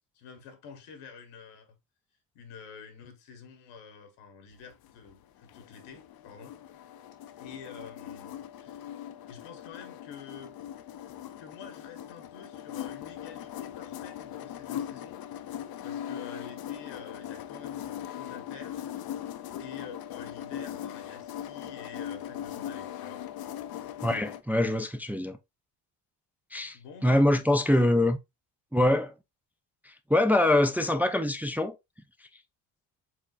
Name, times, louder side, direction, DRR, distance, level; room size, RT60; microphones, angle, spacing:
voice 1, 0.1-1.8 2.3-6.5 7.4-10.5 11.4-15.2 15.8-18.9 19.6-23.2 26.7-27.4 30.7-30.9, left 6 dB, 80° left, 1.4 m, -48 dB
sound 1, 4.7-24.4, left 10 dB, 50° left, 0.6 m, -40 dB
voice 2, 24.0-25.4 26.5-26.8 27.0-28.2 28.7-29.1 29.9-31.7, left 1 dB, 5° right, 0.3 m, -24 dB
4.8 x 3.8 x 2.4 m
supercardioid pair, 75°, 48 cm